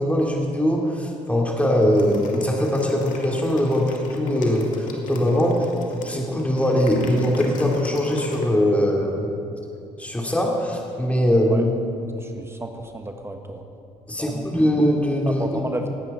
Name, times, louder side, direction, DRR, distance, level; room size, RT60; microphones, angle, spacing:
voice 1, 0.0-9.2 10.0-11.7 14.1-15.5, equal, 10° left, -1 dB, 2.5 m, -21 dB
sound 1, 1.8-8.5, left 3 dB, 65° left, 2.0 m, -31 dB
voice 2, 12.1-13.6 14.2-14.7 15.3-15.9, right 1 dB, 15° right, 4 dB, 1.3 m, -33 dB
17.5 x 9.3 x 5.5 m, 2.6 s
supercardioid pair, 60°, 14 cm